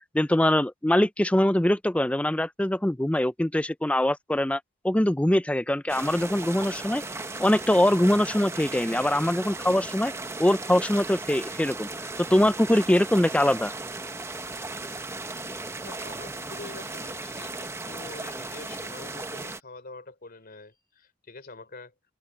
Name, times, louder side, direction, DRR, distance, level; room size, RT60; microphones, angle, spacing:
voice 1, 0.1-7.0 7.4-10.1 10.4-11.9 12.3-13.7, left 1 dB, 5° left, 0.4 m, -23 dB
sound 1, 5.9-19.6, right 2 dB, 10° right, 0.8 m, -36 dB
voice 2, 15.4-21.9, left 3 dB, 45° left, 3.6 m, -45 dB
open air
head